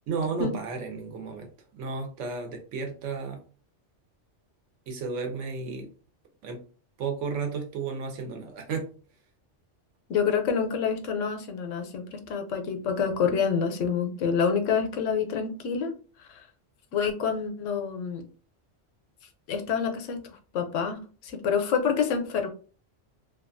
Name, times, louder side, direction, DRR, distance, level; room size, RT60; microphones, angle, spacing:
voice 1, 0.1-3.4 4.9-5.9 6.4-6.6 7.0-8.9, right 4 dB, 80° right, 3 dB, 1.0 m, -33 dB
voice 2, 10.1-16.5 16.9-18.2 19.5-20.2 20.5-22.5, left 6 dB, 85° left, 5 dB, 0.9 m, -27 dB
2.6 x 2.3 x 2.5 m, 0.38 s
omnidirectional pair, 1.2 m